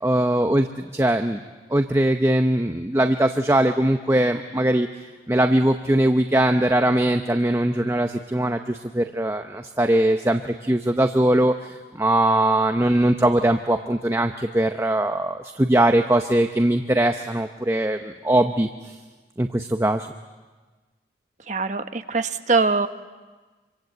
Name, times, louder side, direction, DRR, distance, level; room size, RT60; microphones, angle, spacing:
voice 1, 0.0-1.4 1.7-4.9 5.3-19.0 19.4-20.1, right 1 dB, 15° right, 6 dB, 0.8 m, -21 dB
voice 2, 21.5-22.9, right 4 dB, 40° right, 8 dB, 1.1 m, -22 dB
25.5 x 25.0 x 8.1 m, 1.3 s
head